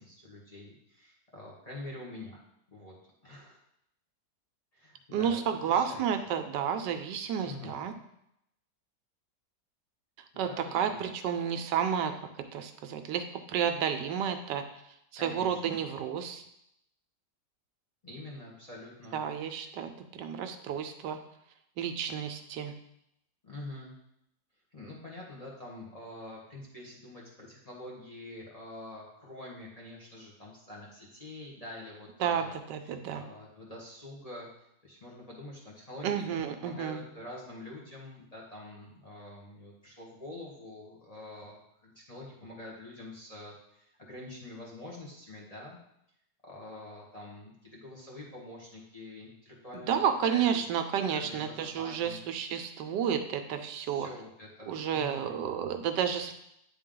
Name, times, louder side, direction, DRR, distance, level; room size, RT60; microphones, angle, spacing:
voice 1, 0.0-2.4 2.7-3.0 3.2-3.6 4.7-6.1 7.4-7.8 10.3-11.0 15.1-15.8 18.0-19.6 23.4-23.9 24.7-32.6 32.8-34.5 34.8-36.2 36.6-45.8 46.4-49.9 50.2-50.5 51.1-52.2 53.8-55.4, left 1 dB, 25° left, -4 dB, 1.1 m, -46 dB
voice 2, 5.1-7.9 10.4-12.1 12.5-14.6 15.1-16.4 19.1-21.2 21.8-22.7 32.2-33.2 36.0-37.0 49.9-54.1 54.7-56.3, right 8 dB, 85° right, 7 dB, 1.2 m, -31 dB
8.9 x 3.5 x 3.8 m, 0.78 s
omnidirectional pair, 1.9 m